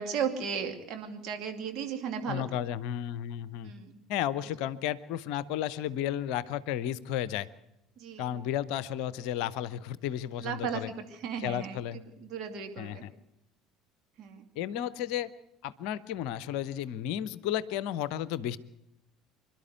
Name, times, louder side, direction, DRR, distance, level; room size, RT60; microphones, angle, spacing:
voice 1, 0.0-2.4 3.6-4.0 8.0-8.4 10.4-13.0 14.2-14.5, right 6 dB, 50° right, 5 dB, 2.7 m, -35 dB
voice 2, 2.3-3.7 4.1-7.5 8.2-10.9 11.4-12.0 12.8-13.1 14.6-15.3 15.6-18.6, left 11 dB, 55° left, 19 dB, 0.7 m, -33 dB
26.5 x 12.0 x 8.2 m, 0.88 s
figure-of-eight pair, 65°, 0 cm